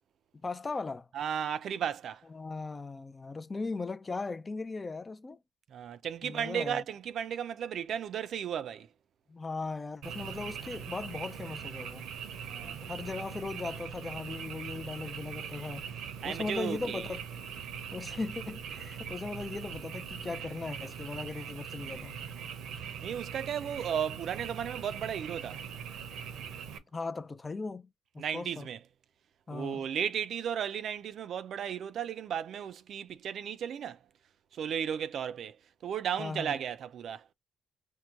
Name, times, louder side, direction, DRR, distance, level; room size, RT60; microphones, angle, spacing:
voice 1, 0.4-1.1 2.3-5.4 6.2-6.8 9.3-12.1 12.7-15.9 16.2-17.3 17.9-22.2 26.9-27.9 28.1-28.7 29.5-29.9 36.2-36.6, left 3 dB, 25° left, 0.4 m, -38 dB
voice 2, 1.1-2.2 5.7-8.9 12.5-12.8 16.2-17.1 23.0-25.6 28.2-28.8 29.5-34.0 34.5-35.6 35.8-37.3, right 8 dB, 65° right, 0.5 m, -34 dB
Frog, 10.0-26.8, right 7 dB, 85° right, 0.8 m, -41 dB
4.6 x 2.1 x 3.7 m
cardioid pair, 90°, 0 cm